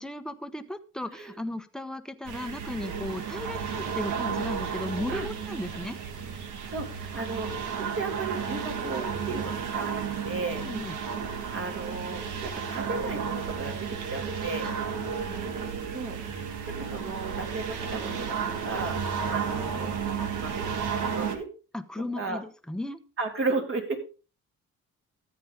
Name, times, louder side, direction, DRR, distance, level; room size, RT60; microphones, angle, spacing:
voice 1, 0.0-6.0 10.6-11.0 14.6-15.5 21.7-23.0, left 1 dB, ahead, 9 dB, 1.1 m, -36 dB
sound 1, 2.2-21.4, right 6 dB, 85° right, 1.8 m, -33 dB
voice 2, 6.7-10.6 11.4-14.7 15.9-16.2 16.7-18.4 18.6-19.0 19.2-19.9 20.4-21.5 22.2-22.4 23.2-24.0, right 3 dB, 45° right, 3 dB, 3.4 m, -34 dB
14.0 x 8.7 x 3.7 m, 0.34 s
cardioid pair, 90°, 30 cm